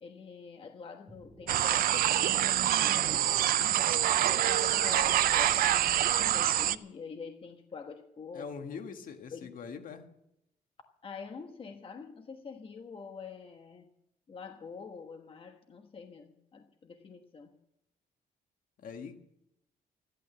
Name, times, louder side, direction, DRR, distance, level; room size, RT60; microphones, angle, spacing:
voice 1, 0.0-3.8 4.2-8.8 9.3-9.6 11.0-13.9 14.3-17.6, left 5 dB, 35° left, 5 dB, 1.3 m, -46 dB
sound 1, 1.1-6.1, equal, ahead, 3.0 m, -55 dB
sound 2, 1.5-6.8, right 12 dB, 65° right, 0.6 m, -26 dB
voice 2, 8.3-10.1 18.8-19.2, left 6 dB, 60° left, 6 dB, 1.7 m, -42 dB
14.5 x 12.0 x 7.0 m, 0.80 s
cardioid pair, 135°, 16 cm